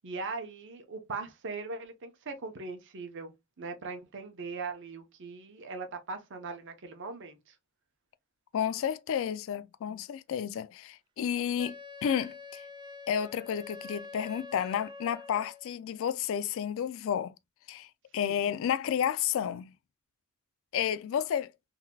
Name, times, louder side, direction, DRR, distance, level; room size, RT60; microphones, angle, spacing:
voice 1, 0.0-3.3 3.6-7.5 18.2-18.4, right 4 dB, 55° right, 0.8 m, -40 dB
voice 2, 8.5-11.8 12.0-12.7 13.1-17.3 17.7-19.7 20.7-21.5, left 8 dB, 65° left, 0.3 m, -31 dB
Wind instrument woodwind instrument, 11.6-15.7, left 3 dB, 20° right, 0.4 m, -46 dB
3.8 x 2.8 x 2.2 m
head